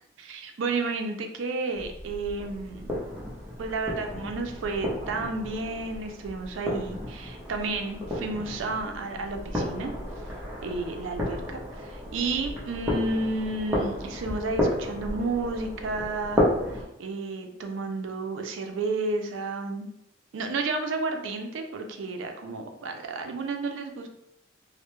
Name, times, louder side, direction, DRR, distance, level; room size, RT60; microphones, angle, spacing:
voice 1, 0.2-3.0 3.6-9.9 10.6-19.9 20.3-24.1, right 3 dB, 85° right, 5 dB, 0.4 m, -32 dB
sound 1, 1.7-16.8, left 1 dB, 10° right, 0.6 m, -32 dB
2.2 x 2.0 x 2.9 m, 0.78 s
head